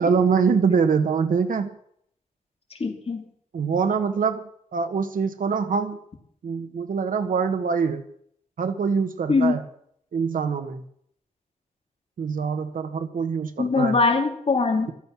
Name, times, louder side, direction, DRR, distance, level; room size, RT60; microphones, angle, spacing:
voice 1, 0.0-1.7 3.5-6.0 6.4-8.0 8.6-9.6 10.1-10.8 12.2-14.0, right 5 dB, 85° right, 8 dB, 1.3 m, -24 dB
voice 2, 2.8-3.2 9.3-9.6 13.6-14.9, left 4 dB, 45° left, 3 dB, 3.1 m, -22 dB
14.5 x 13.0 x 6.1 m, 0.66 s
wide cardioid pair, 120°, 14 cm